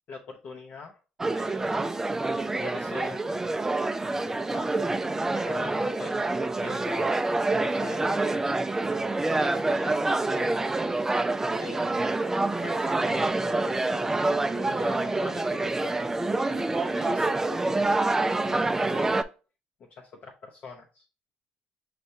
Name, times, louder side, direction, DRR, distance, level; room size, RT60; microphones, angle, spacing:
voice 1, 0.1-1.0 1.4-1.8 2.6-3.2 3.8-4.8 5.3-7.2 7.6-8.5 9.3-10.6 11.6-12.1 12.5-14.3 14.5-19.2 19.8-21.1, left 5 dB, 55° left, 1 dB, 0.6 m, -43 dB
sound 1, 1.2-19.2, right 2 dB, 15° right, 0.3 m, -27 dB
5.4 x 3.3 x 2.7 m, 0.34 s
cardioid pair, 95°, 3 cm